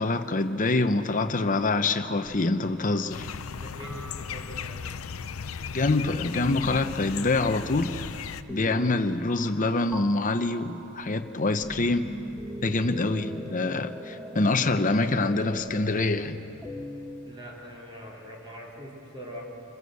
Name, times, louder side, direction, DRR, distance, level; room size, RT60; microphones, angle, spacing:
voice 1, 0.0-3.3 5.7-8.0 8.5-12.1 12.6-16.4, left 2 dB, 40° left, 8 dB, 0.9 m, -25 dB
sound 1, 2.2-3.1 3.8-4.9 6.6-7.2 8.5-9.6 9.9-17.3, equal, 5° right, 1.3 m, -40 dB
sound 2, 3.1-8.4, left 6 dB, 80° left, 0.6 m, -36 dB
voice 2, 3.5-4.8 17.3-19.6, equal, 25° right, -3 dB, 3.9 m, -42 dB
26.5 x 15.0 x 7.9 m, 2.8 s
head